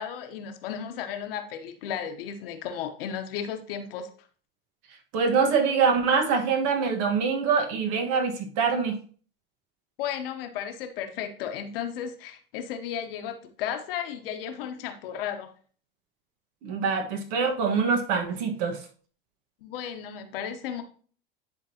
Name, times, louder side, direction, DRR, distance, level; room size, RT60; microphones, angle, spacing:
voice 1, 0.0-4.1 10.0-15.5 19.6-20.8, left 9 dB, 75° left, 7 dB, 1.0 m, -34 dB
voice 2, 5.1-9.0 16.6-18.8, right 5 dB, 60° right, 3 dB, 1.5 m, -24 dB
10.5 x 3.7 x 2.8 m, 0.43 s
hypercardioid pair, 95°, 29 cm